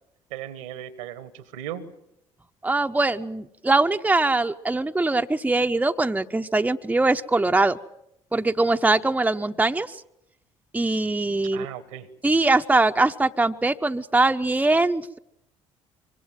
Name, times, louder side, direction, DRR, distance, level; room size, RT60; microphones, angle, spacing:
voice 1, 0.3-1.9 11.5-12.1, right 10 dB, 75° right, 14 dB, 1.7 m, -37 dB
voice 2, 2.6-7.8 8.3-10.0 10.7-11.7 12.2-15.2, right 2 dB, 10° right, 6 dB, 1.0 m, -22 dB
24.5 x 24.0 x 7.5 m, 0.81 s
figure-of-eight pair, 50°, 16 cm